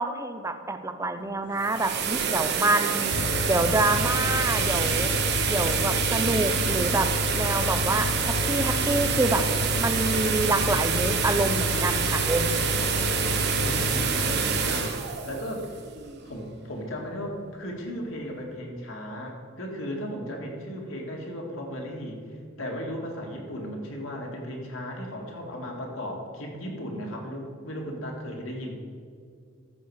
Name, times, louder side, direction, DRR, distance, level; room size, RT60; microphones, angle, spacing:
voice 1, 0.0-3.1 3.4-5.1 5.5-9.5 9.8-12.7, right 2 dB, 15° right, 8 dB, 0.5 m, -27 dB
sound 1, 1.4-16.4, right 6 dB, 50° right, 0.9 m, -27 dB
sound 2, 3.1-14.9, left 4 dB, 60° left, 0.4 m, -31 dB
voice 2, 13.5-15.0 15.2-15.7 16.2-22.2 22.6-28.7, equal, 75° left, 0 dB, 2.0 m, -36 dB
14.0 x 6.6 x 4.8 m, 2.2 s
head